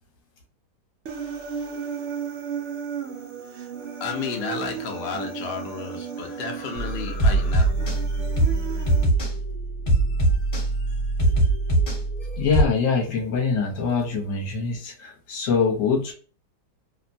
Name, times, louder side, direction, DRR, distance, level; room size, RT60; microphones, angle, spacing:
Human voice, 1.1-9.0, right 6 dB, 75° right, 0.6 m, -35 dB
voice 1, 4.0-7.7, left 5 dB, 75° left, 2 dB, 0.5 m, -32 dB
sound 1, 6.8-12.6, right 2 dB, 35° left, 1.0 m, -22 dB
voice 2, 12.4-16.1, left 5 dB, 55° left, 0 dB, 1.1 m, -24 dB
2.9 x 2.1 x 2.5 m, 0.40 s
omnidirectional pair, 1.8 m